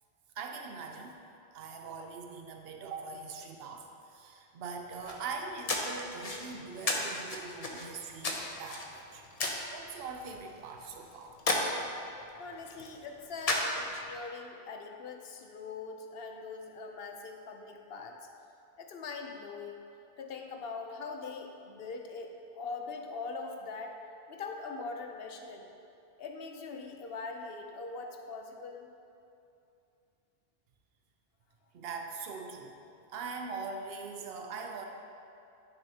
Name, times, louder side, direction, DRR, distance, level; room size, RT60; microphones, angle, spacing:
voice 1, 0.4-1.2 1.5-11.3 31.7-32.8 33.1-34.9, right 4 dB, 75° right, 3 dB, 0.9 m, -42 dB
sound 1, 4.9-14.2, left 2 dB, 40° left, 0.8 m, -36 dB
voice 2, 12.4-18.1 18.8-19.8 20.2-24.0 24.3-25.7 26.2-28.9, left 4 dB, 75° left, 3 dB, 0.9 m, -42 dB
11.0 x 6.4 x 2.8 m, 2.7 s
omnidirectional pair, 1.0 m